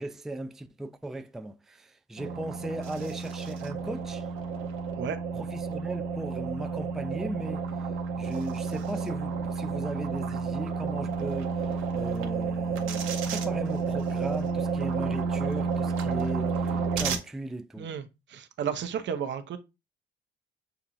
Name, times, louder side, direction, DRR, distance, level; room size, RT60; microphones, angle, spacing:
voice 1, 0.0-4.3 5.3-7.9 8.2-17.9, right 1 dB, ahead, 0.3 m, -38 dB
sound 1, 2.2-17.2, right 5 dB, 90° right, 0.9 m, -31 dB
voice 2, 17.8-19.6, right 7 dB, 65° right, 0.7 m, -33 dB
6.7 x 2.5 x 3.0 m
cardioid pair, 90°, 20 cm